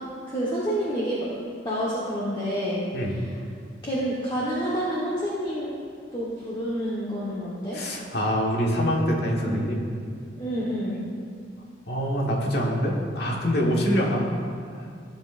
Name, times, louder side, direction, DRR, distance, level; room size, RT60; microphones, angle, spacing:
voice 1, 0.0-1.3 1.6-3.2 3.8-5.7 6.1-7.8 9.4-9.7 10.4-11.0, equal, 25° left, -8 dB, 1.3 m, -28 dB
voice 2, 7.7-9.8 11.9-14.3 14.7-15.0, equal, 60° left, -2 dB, 1.5 m, -25 dB
14.5 x 7.3 x 2.6 m, 2.2 s
head